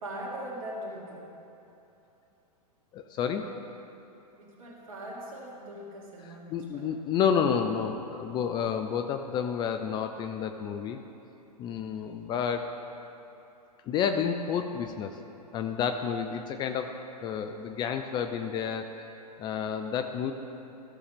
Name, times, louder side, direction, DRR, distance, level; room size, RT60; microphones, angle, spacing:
voice 1, 0.0-1.3 4.4-6.9, right 1 dB, 60° right, -2 dB, 2.3 m, -40 dB
voice 2, 2.9-3.5 6.2-11.0 11.6-12.7 13.9-15.2 15.5-19.1 19.4-20.3, left 7 dB, 20° left, 6 dB, 0.4 m, -30 dB
14.5 x 6.3 x 3.6 m, 2.9 s
figure-of-eight pair, 110°, 20 cm